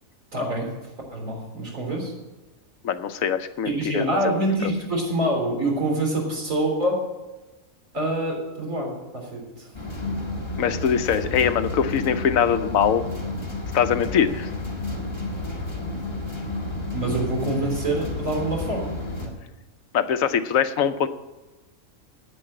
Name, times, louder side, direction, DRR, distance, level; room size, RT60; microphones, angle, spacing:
voice 1, 0.3-0.7 1.1-2.1 3.6-7.0 7.9-9.7 16.9-19.0 19.2-19.3, right 1 dB, 75° right, -1 dB, 4.1 m, -26 dB
voice 2, 2.8-4.2 10.6-13.0 13.7-14.5 17.1-17.2 19.9-21.1, left 8 dB, 80° left, 10 dB, 1.1 m, -22 dB
sound 1, 9.7-19.3, left 2 dB, 20° left, 1.9 m, -31 dB
9.8 x 8.6 x 8.7 m, 1.1 s
omnidirectional pair, 1.4 m